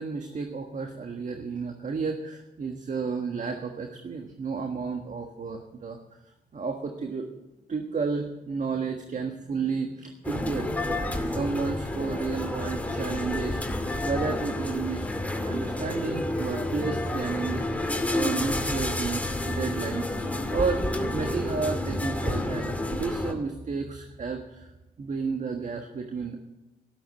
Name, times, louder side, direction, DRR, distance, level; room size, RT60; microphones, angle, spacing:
voice 1, 0.0-6.0 6.5-7.3 7.7-15.1 15.5-20.1 20.5-24.7 25.0-26.4, right 5 dB, 50° right, 4 dB, 1.5 m, -32 dB
sound 1, 10.2-23.3, left 1 dB, 10° left, 2.3 m, -30 dB
13.0 x 12.5 x 7.7 m, 0.99 s
cardioid pair, 75°, 16 cm